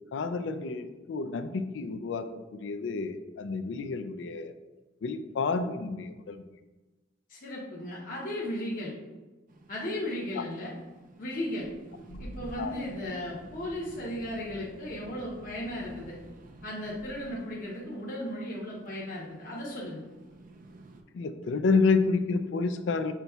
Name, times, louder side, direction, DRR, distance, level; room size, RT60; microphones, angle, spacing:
voice 1, 0.1-2.3 2.5-4.5 5.0-6.4 10.4-10.5 12.1-12.2 12.6-12.7 21.1-23.1, left 4 dB, 75° left, 10 dB, 0.4 m, -29 dB
voice 2, 7.3-8.9 9.7-10.7 11.2-11.7 12.2-16.2 16.6-20.0, left 1 dB, 50° left, -5 dB, 0.9 m, -36 dB
sound 1, 9.5-21.0, right 1 dB, 45° right, 0.4 m, -50 dB
5.7 x 3.9 x 2.3 m, 1.2 s
head